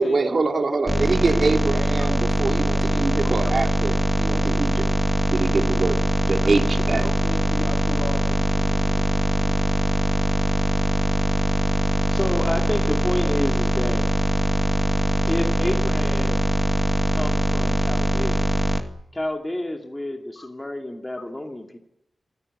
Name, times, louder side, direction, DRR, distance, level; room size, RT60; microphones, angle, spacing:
voice 1, 0.0-4.9 5.3-6.0 6.2-7.1, right 3 dB, 50° right, 3 dB, 3.3 m, -24 dB
sound 1, 0.9-18.8, right 1 dB, 15° right, 2.4 m, -22 dB
voice 2, 6.9-9.7 20.4-20.5, left 3 dB, 75° left, 2 dB, 3.8 m, -36 dB
voice 3, 12.1-14.1 15.3-16.5 17.1-18.5 19.1-21.8, left 1 dB, 15° left, 2 dB, 2.6 m, -29 dB
27.0 x 15.5 x 9.5 m, 0.88 s
wide cardioid pair, 120°, 0 cm